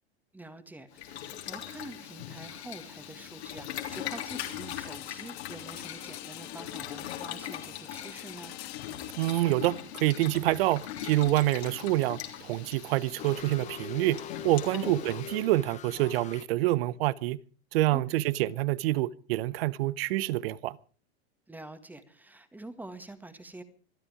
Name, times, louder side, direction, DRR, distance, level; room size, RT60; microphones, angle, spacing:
voice 1, 0.3-8.5 14.7-15.0 17.9-18.2 21.5-23.6, right 2 dB, 5° right, 1.7 m, -46 dB
Boiling, 0.9-15.5, left 10 dB, 80° left, 3.3 m, -41 dB
sound 1, 3.7-13.6, left 15 dB, 50° left, 2.1 m, -47 dB
voice 2, 9.2-17.4 17.7-20.8, right 16 dB, 65° right, 0.9 m, -27 dB
sound 2, 13.2-16.4, left 8 dB, 20° left, 0.8 m, -42 dB
25.5 x 10.0 x 5.0 m
hypercardioid pair, 120°, 32 cm